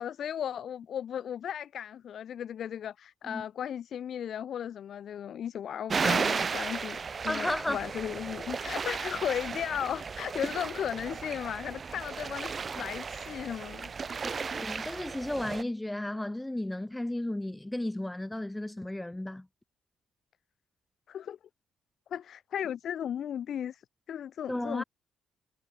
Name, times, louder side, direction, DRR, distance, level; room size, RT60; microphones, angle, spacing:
voice 1, 0.0-7.0 7.2-13.9 21.1-21.4 22.1-23.8 24.1-24.8, left 9 dB, 65° left, 1.2 m, -36 dB
sound 1, 5.9-15.6, right 5 dB, 40° right, 0.9 m, -34 dB
voice 2, 7.2-7.8 14.2-19.5 24.5-24.8, left 1 dB, 10° left, 0.9 m, -34 dB
cardioid pair, 90°, 0 cm